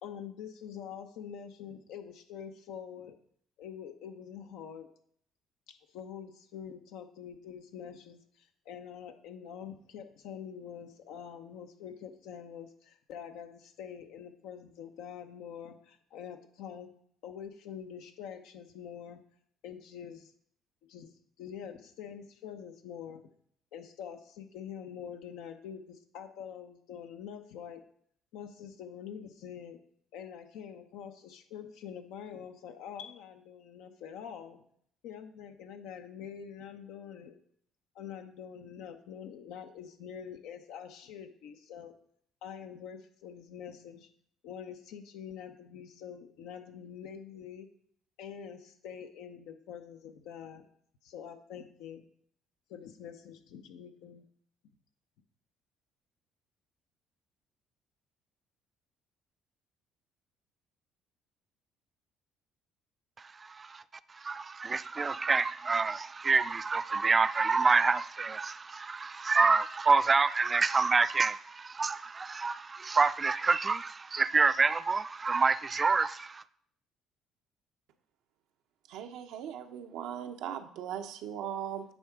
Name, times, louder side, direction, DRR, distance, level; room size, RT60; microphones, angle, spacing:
voice 1, 0.0-3.2 3.6-4.9 5.7-16.9 17.2-19.2 19.6-20.3 20.9-21.1 21.4-23.2 23.7-27.8 28.3-29.8 30.1-34.6 35.0-37.4 37.9-41.9 42.4-44.1 44.4-47.7 48.2-50.6 51.0-52.0 52.7-54.2, left 8 dB, 75° left, 0.8 m, -45 dB
voice 2, 63.4-63.8 64.1-76.4, right 4 dB, 30° right, 0.3 m, -27 dB
voice 3, 78.9-81.8, right 9 dB, 75° right, 0.7 m, -39 dB
8.8 x 3.6 x 4.9 m
hypercardioid pair, 65°, 0 cm